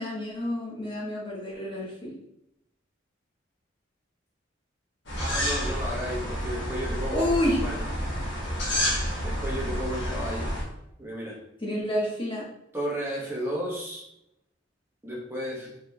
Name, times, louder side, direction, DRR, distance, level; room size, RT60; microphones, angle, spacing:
voice 1, 0.0-2.1 7.1-7.7 11.6-12.5, left 1 dB, 25° left, -4 dB, 1.2 m, -29 dB
sound 1, 5.1-10.6, equal, 70° left, 1.2 m, -29 dB
voice 2, 5.2-7.8 9.2-10.5 11.0-11.4 12.7-14.1 15.0-15.7, equal, 15° right, -4 dB, 1.1 m, -33 dB
4.9 x 3.4 x 2.3 m, 0.80 s
head